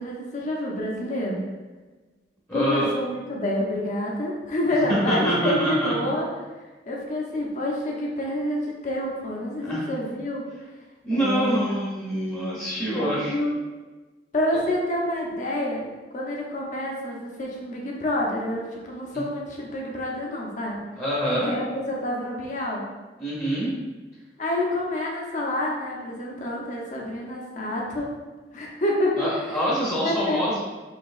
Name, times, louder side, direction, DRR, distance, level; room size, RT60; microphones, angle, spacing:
voice 1, 0.0-1.4 2.5-6.3 6.9-10.4 11.1-11.8 13.0-13.6 14.3-15.9 16.1-20.8 21.3-22.9 24.4-28.1 28.5-29.3 30.0-30.6, left 1 dB, 45° left, -2 dB, 0.7 m, -28 dB
voice 2, 2.5-2.9 4.7-6.1 9.6-9.9 11.0-13.3 21.0-21.5 23.2-23.7 29.2-30.6, right 1 dB, 15° left, -8 dB, 0.8 m, -25 dB
4.4 x 2.9 x 2.4 m, 1.3 s
head